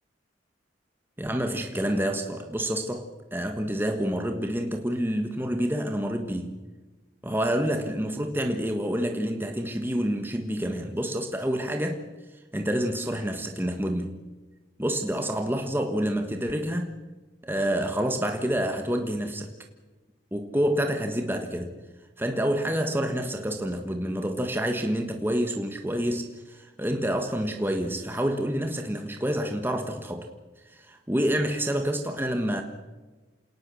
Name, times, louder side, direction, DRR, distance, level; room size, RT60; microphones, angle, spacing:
voice 1, 1.2-6.6 7.2-12.0 12.5-14.2 14.8-17.0 17.4-19.5 20.3-21.7 22.2-30.3 30.6-32.6, equal, 10° right, 4 dB, 1.5 m, -28 dB
28.0 x 19.0 x 6.4 m, 1.2 s
head